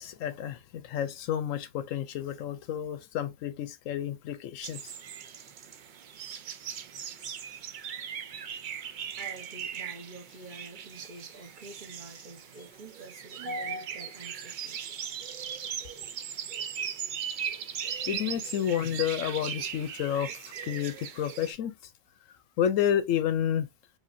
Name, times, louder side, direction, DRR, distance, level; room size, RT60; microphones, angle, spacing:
voice 1, 0.0-4.9 18.1-20.3 20.6-21.8 22.6-23.7, left 9 dB, 75° left, 0.9 m, -30 dB
sound 1, 4.6-21.5, right 8 dB, 75° right, 0.4 m, -39 dB
voice 2, 9.2-14.8, equal, 40° right, 1.1 m, -44 dB
5.0 x 2.8 x 2.6 m
omnidirectional pair, 1.4 m